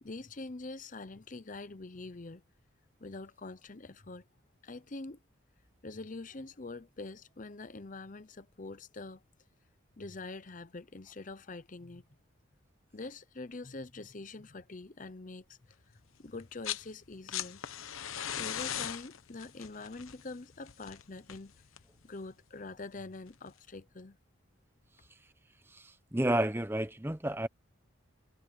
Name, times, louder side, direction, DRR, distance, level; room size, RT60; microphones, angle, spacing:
voice 1, 0.0-2.4 3.0-4.2 4.6-5.2 5.8-9.2 10.0-12.0 12.9-15.6 16.2-17.6 18.4-21.5 22.0-24.2, left 3 dB, 40° left, 0.7 m, -44 dB
sound 1, 16.4-16.9 17.1-22.0 23.3-23.4, left 10 dB, 80° left, 1.0 m, -39 dB
voice 2, 25.7-27.5, right 1 dB, 10° right, 0.7 m, -31 dB
head